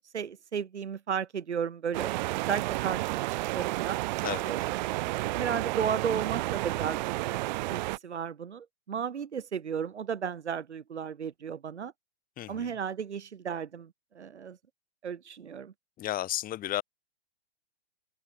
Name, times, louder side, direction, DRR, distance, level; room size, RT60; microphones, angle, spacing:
voice 1, 0.1-2.1 2.5-3.3 3.5-4.0 4.5-5.0 5.3-7.0 7.3-11.9 12.5-14.6 15.0-15.7, right 7 dB, 80° right, 1.8 m, -34 dB
sound 1, 1.9-8.0, right 20 dB, 40° right, 0.9 m, -31 dB
voice 2, 4.2-4.5 12.4-12.7 16.0-16.8, left 13 dB, 25° left, 2.9 m, -33 dB
open air
hypercardioid pair, 120°, 33 cm